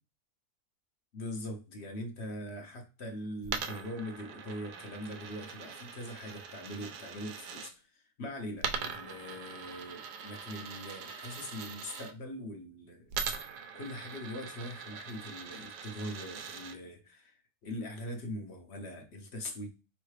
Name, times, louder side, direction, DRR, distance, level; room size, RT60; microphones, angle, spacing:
voice 1, 1.1-13.4 13.7-19.7, left 1 dB, 50° left, 4 dB, 0.9 m, -42 dB
Coin (dropping), 3.4-7.7 8.6-12.1 13.1-16.8, right 6 dB, 85° right, 1.2 m, -41 dB
4.4 x 3.2 x 3.2 m, 0.31 s
omnidirectional pair, 1.6 m